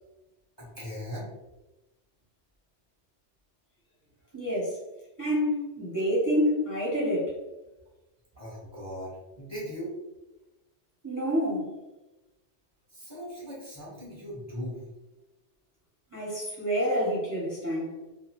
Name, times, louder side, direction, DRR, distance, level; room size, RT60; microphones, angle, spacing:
voice 1, 0.6-1.3 8.3-9.9 12.9-14.8, equal, 15° left, -7 dB, 0.8 m, -39 dB
voice 2, 4.3-4.8 5.2-7.3 11.0-11.7 16.1-18.0, equal, 20° right, -7 dB, 0.7 m, -28 dB
2.4 x 2.4 x 2.9 m, 1.0 s
omnidirectional pair, 1.2 m